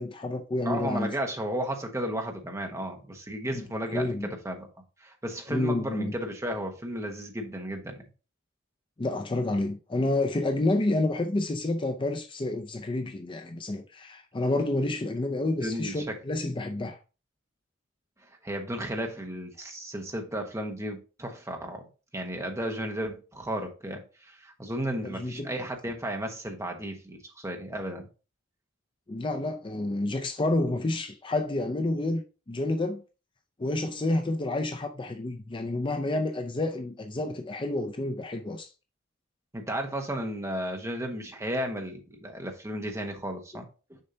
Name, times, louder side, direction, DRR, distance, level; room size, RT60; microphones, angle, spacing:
voice 1, 0.0-1.1 3.5-3.6 3.9-4.3 5.5-6.1 9.0-17.0 25.0-25.5 29.1-32.2 32.5-33.0 33.6-38.7, left 2 dB, 25° left, 0.5 m, -29 dB
voice 2, 0.6-4.7 5.0-8.0 15.6-16.2 18.4-21.8 22.1-28.1 39.5-44.0, right 1 dB, 15° right, 1.2 m, -34 dB
6.6 x 5.5 x 2.8 m
head